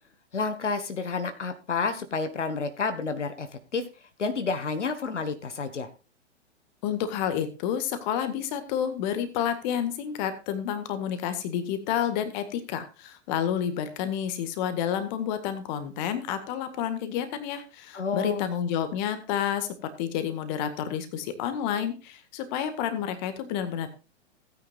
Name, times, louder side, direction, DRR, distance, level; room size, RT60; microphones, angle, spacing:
voice 1, 0.3-3.5 3.7-3.8 4.2-5.9 17.9-18.5, left 4 dB, 75° left, 9 dB, 1.5 m, -30 dB
voice 2, 6.8-23.9, left 9 dB, 40° left, 10 dB, 1.8 m, -30 dB
16.5 x 9.4 x 2.4 m, 0.31 s
figure-of-eight pair, 110°, 36 cm